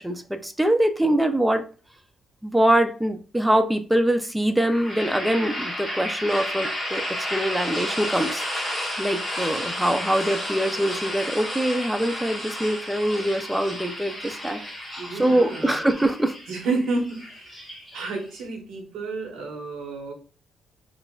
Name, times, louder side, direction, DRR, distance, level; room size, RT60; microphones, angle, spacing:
voice 1, 0.0-1.6 2.4-8.4 9.0-14.6 15.1-16.4, right 1 dB, 5° right, 7 dB, 0.5 m, -23 dB
sound 1, 4.6-18.4, left 1 dB, 10° left, 1.2 m, -32 dB
voice 2, 15.0-15.9 16.5-17.6 17.9-20.1, right 3 dB, 85° right, 0 dB, 1.3 m, -30 dB
4.0 x 2.5 x 2.4 m, 0.37 s
cardioid pair, 90°, 0 cm